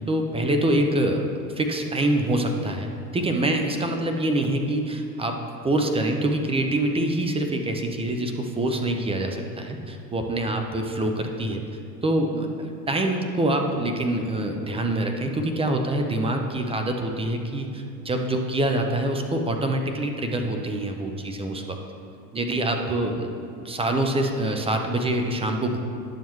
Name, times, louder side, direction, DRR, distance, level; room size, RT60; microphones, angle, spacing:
voice 1, 0.1-1.2 1.6-11.6 12.0-21.8 22.3-23.3 23.6-25.8, right 1 dB, 10° right, 4 dB, 0.6 m, -25 dB
10.5 x 7.0 x 3.1 m, 2.5 s
hypercardioid pair, 100°, 47 cm